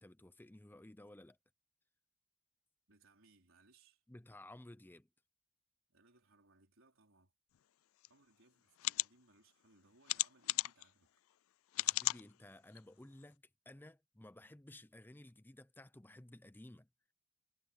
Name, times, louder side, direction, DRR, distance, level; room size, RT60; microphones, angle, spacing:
voice 1, 0.0-1.4 4.1-5.1 11.8-16.9, left 1 dB, 10° left, 0.6 m, -56 dB
voice 2, 2.9-4.0 5.9-7.3 8.1-11.1, right 3 dB, 65° right, 4.7 m, -68 dB
sound 1, 8.0-8.1 8.8-9.1 10.1-10.8 11.7-12.2 12.8-12.9 13.2-13.3, left 19 dB, 65° left, 0.3 m, -34 dB
head